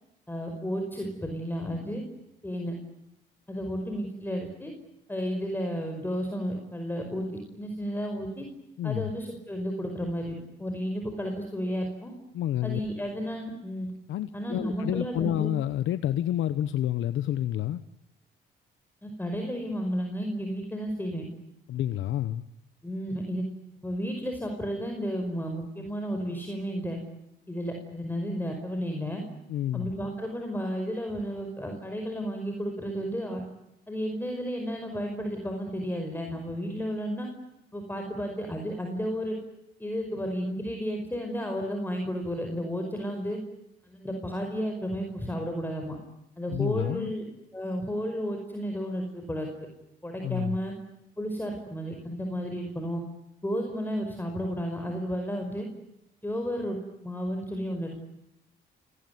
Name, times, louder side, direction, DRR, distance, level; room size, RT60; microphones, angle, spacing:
voice 1, 0.3-2.0 2.4-2.7 3.5-4.7 5.1-7.3 7.5-8.5 8.8-12.1 12.6-13.9 14.3-15.5 19.0-21.3 22.8-23.4 23.8-27.0 27.5-29.2 29.7-33.4 33.9-37.3 37.7-39.4 39.8-43.4 43.8-46.0 46.4-47.2 47.5-49.5 50.0-50.7 51.2-53.0 53.4-55.7 56.2-57.9, equal, 10° left, 5.1 m, -32 dB
voice 2, 8.8-9.1 12.3-12.8 14.1-17.8 21.7-22.4 29.5-29.9 46.5-47.1 50.2-50.6, left 12 dB, 80° left, 1.0 m, -29 dB
29.0 x 18.0 x 9.4 m
cardioid pair, 90°, 20 cm